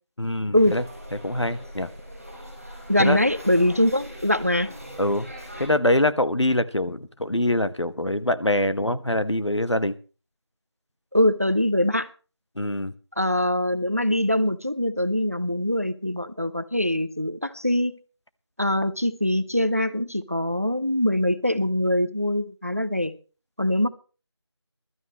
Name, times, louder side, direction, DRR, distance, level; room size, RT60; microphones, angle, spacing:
voice 1, 0.2-0.8 1.2-1.9 3.0-3.2 5.0-5.3 5.6-10.0 12.6-12.9, left 1 dB, 80° left, 1.4 m, -24 dB
sound 1, 0.5-5.7, equal, 5° left, 3.2 m, -41 dB
voice 2, 2.9-4.7 11.1-12.1 13.2-18.0 18.6-23.1 23.6-23.9, left 1 dB, 30° right, 0.6 m, -23 dB
21.0 x 13.0 x 3.1 m
figure-of-eight pair, 175°, 15 cm